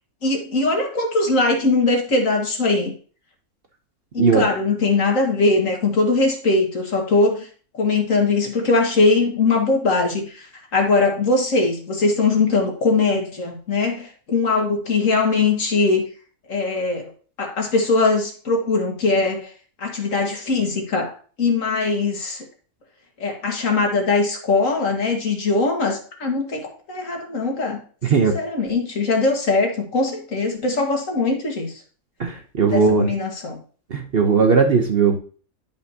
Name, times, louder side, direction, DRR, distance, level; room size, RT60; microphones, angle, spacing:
voice 1, 0.2-3.0 4.1-7.5 7.8-10.5 10.7-16.1 16.5-17.1 17.4-19.5 19.8-21.1 21.4-22.4 23.2-27.8 28.3-31.7 32.7-33.6, left 3 dB, 60° left, 2 dB, 2.0 m, -21 dB
voice 2, 28.0-28.4 32.2-33.1 33.9-35.2, right 5 dB, 50° right, 4 dB, 0.9 m, -18 dB
11.5 x 5.3 x 2.8 m, 0.40 s
omnidirectional pair, 1.5 m